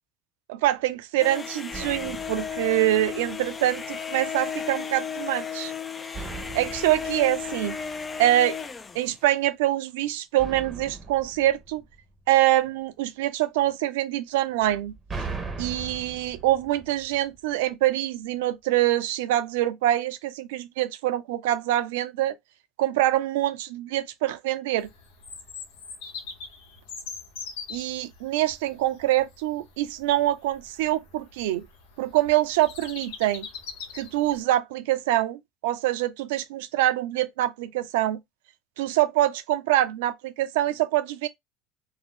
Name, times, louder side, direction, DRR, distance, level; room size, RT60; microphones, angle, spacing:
voice 1, 0.5-5.7 6.5-7.8 8.2-8.6 8.9-11.8 12.3-14.9 15.6-22.4 22.8-24.9 27.7-31.7 32.0-33.5 33.9-38.2 38.8-41.3, right 14 dB, 85° right, 0.4 m, -25 dB
sound 1, 1.2-9.2, left 7 dB, 25° left, 0.3 m, -34 dB
sound 2, 1.7-3.6 6.1-8.6 10.4-12.6 14.6-17.7, right 4 dB, 20° right, 0.7 m, -40 dB
Bird vocalization bird call bird song, 24.8-34.4, left 5 dB, 85° left, 0.8 m, -42 dB
2.6 x 2.0 x 3.3 m
supercardioid pair, 100°, 0 cm